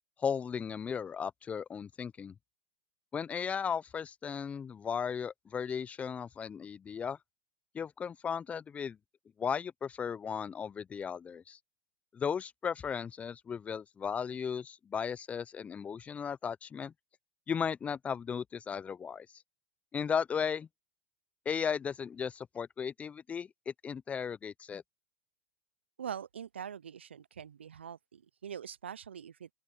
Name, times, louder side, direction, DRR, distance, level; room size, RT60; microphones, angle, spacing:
voice 1, 0.2-2.3 3.1-7.2 7.7-9.0 9.4-11.6 12.1-16.9 17.5-19.3 19.9-20.7 21.5-24.8, left 7 dB, 20° left, 0.6 m, -36 dB
voice 2, 26.0-29.5, right 8 dB, 85° right, 0.5 m, -43 dB
open air
hypercardioid pair, 95°, 6 cm